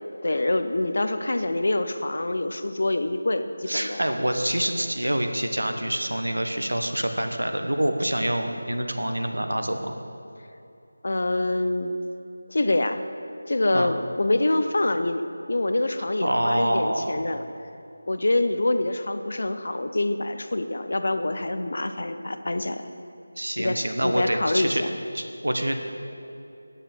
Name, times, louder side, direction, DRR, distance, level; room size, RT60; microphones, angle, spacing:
voice 1, 0.2-4.0 11.0-11.9 12.5-13.0 13.5-17.4 18.1-22.8 23.6-24.9, left 2 dB, 60° left, 9 dB, 0.6 m, -25 dB
voice 2, 3.7-10.0 13.7-13.9 16.2-17.3 23.3-25.8, right 1 dB, 85° right, 6 dB, 1.0 m, -26 dB
9.9 x 6.7 x 6.1 m, 2.7 s
figure-of-eight pair, 165°, 0 cm